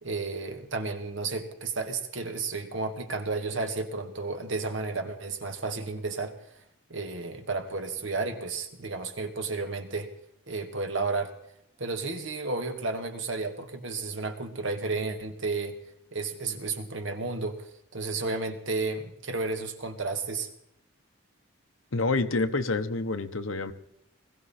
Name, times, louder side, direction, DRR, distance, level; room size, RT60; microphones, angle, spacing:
voice 1, 0.0-6.3 6.9-10.1 10.5-11.3 11.8-15.8 16.1-17.6 17.9-20.5, right 3 dB, 65° right, 6 dB, 1.9 m, -32 dB
voice 2, 21.9-23.7, left 3 dB, 75° left, 10 dB, 1.1 m, -27 dB
20.5 x 15.5 x 4.4 m, 0.79 s
head